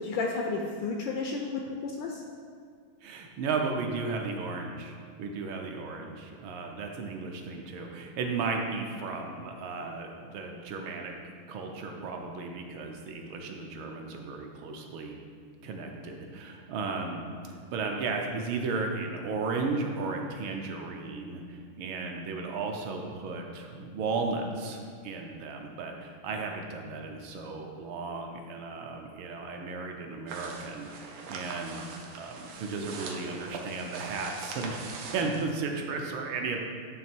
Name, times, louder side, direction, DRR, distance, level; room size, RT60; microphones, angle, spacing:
voice 1, 0.0-2.2, left 3 dB, 75° left, 1 dB, 1.2 m, -32 dB
voice 2, 3.0-11.2 11.5-15.2 15.6-36.6, right 4 dB, 75° right, 2 dB, 1.4 m, -35 dB
sound 1, 30.3-35.4, right 4 dB, 90° right, 1.7 m, -42 dB
9.2 x 3.2 x 4.4 m, 2.1 s
omnidirectional pair, 2.4 m